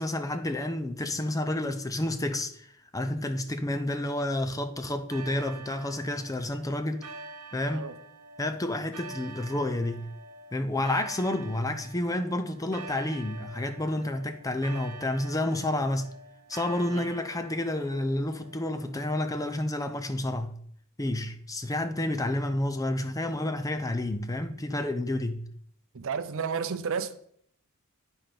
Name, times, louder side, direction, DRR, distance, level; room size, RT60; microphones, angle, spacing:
voice 1, 0.0-7.1 7.5-7.9 8.4-10.1 10.5-16.1 16.5-20.6 21.0-25.5, left 1 dB, 15° left, 0.6 m, -30 dB
sound 1, 5.1-19.0, right 3 dB, 85° right, 0.9 m, -46 dB
voice 2, 25.9-27.2, right 6 dB, 65° right, 0.6 m, -32 dB
9.3 x 4.4 x 5.2 m
head